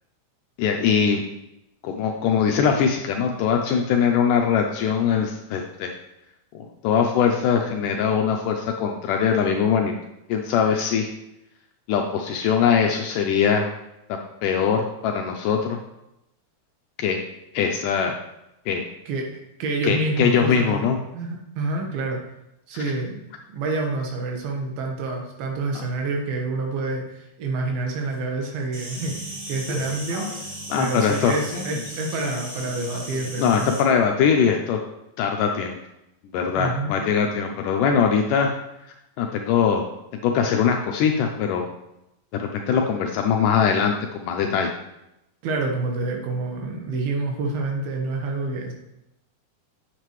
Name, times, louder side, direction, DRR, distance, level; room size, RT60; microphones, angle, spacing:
voice 1, 0.6-1.2 1.8-5.9 6.5-9.9 10.3-11.1 11.9-13.7 14.1-15.8 17.0-17.2 17.5-18.1 18.7-18.9 19.8-21.0 30.7-31.3 33.4-34.8 35.2-35.8 36.3-38.5 39.2-39.9 40.1-41.7 42.4-44.7, left 7 dB, 80° left, 2 dB, 1.9 m, -22 dB
voice 2, 19.1-20.8 21.1-22.2 22.7-23.2 23.5-33.7 36.6-36.9 45.4-48.7, right 3 dB, 85° right, 1 dB, 3.1 m, -28 dB
sound 1, 27.7-34.6, left 2 dB, 45° left, 2.0 m, -40 dB
Insect, 28.7-33.8, right 1 dB, 35° right, 2.8 m, -37 dB
8.5 x 7.4 x 3.1 m, 0.87 s
omnidirectional pair, 4.3 m